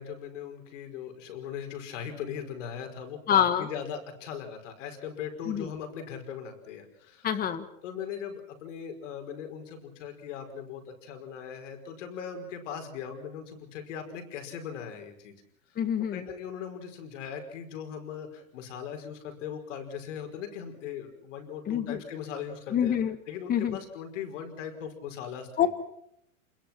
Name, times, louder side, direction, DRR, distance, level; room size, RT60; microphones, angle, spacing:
voice 1, 0.0-7.3 7.8-15.3 15.7-15.8 16.1-23.0 23.3-25.7, left 7 dB, 65° left, 5 dB, 5.2 m, -39 dB
voice 2, 3.3-3.7 5.5-5.6 7.2-7.6 15.8-16.2 21.7-22.0 22.7-23.2 23.5-23.8 25.6-25.7, left 9 dB, 20° left, 11 dB, 1.8 m, -26 dB
27.5 x 21.5 x 6.0 m, 0.74 s
supercardioid pair, 145°, 40 cm